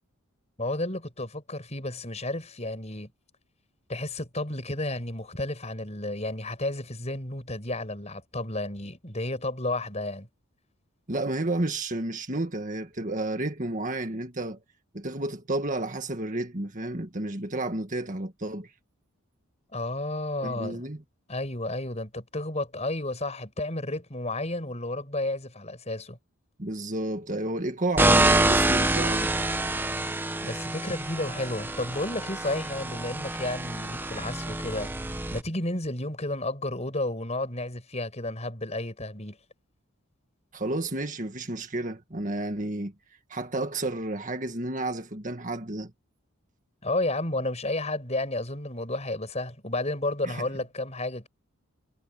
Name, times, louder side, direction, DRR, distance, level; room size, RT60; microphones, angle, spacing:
voice 1, 0.6-3.1 3.9-10.3 19.7-20.9 21.3-26.2 30.4-34.9 35.3-39.4 46.8-51.3, left 2 dB, 30° left, 6.1 m, -32 dB
voice 2, 11.1-14.6 14.9-18.7 20.4-21.0 26.6-29.3 40.5-42.9 43.3-45.9 50.2-50.5, right 2 dB, 35° right, 1.8 m, -31 dB
sound 1, 28.0-35.4, right 2 dB, 10° right, 0.8 m, -26 dB
head